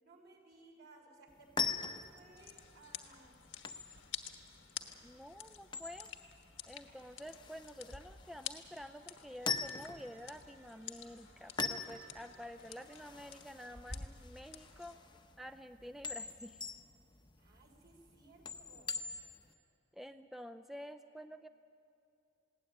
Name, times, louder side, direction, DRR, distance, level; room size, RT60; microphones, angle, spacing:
voice 1, 0.0-3.4 17.4-19.0, right 3 dB, 60° right, 1 dB, 4.3 m, -60 dB
sound 1, 1.3-19.5, left 4 dB, 25° left, 0.8 m, -43 dB
sound 2, 2.4-15.0, left 10 dB, 75° left, 1.3 m, -51 dB
voice 2, 5.0-6.1 6.7-15.0 15.4-16.6 19.9-21.5, equal, ahead, 8 dB, 0.4 m, -49 dB
sound 3, 8.9-15.9, right 3 dB, 75° right, 4.4 m, -69 dB
20.0 x 17.0 x 9.9 m, 2.6 s
head